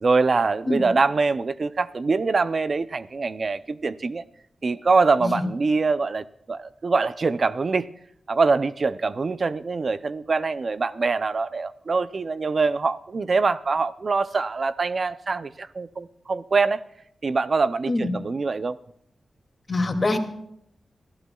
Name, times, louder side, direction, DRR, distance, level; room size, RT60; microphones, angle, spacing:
voice 1, 0.0-4.2 4.6-7.9 8.3-16.8 17.2-18.8, right 4 dB, 50° right, 14 dB, 0.5 m, -24 dB
voice 2, 19.7-20.2, left 2 dB, 40° left, 4 dB, 2.4 m, -24 dB
26.0 x 14.5 x 2.3 m, 0.72 s
wide cardioid pair, 85°, 0 cm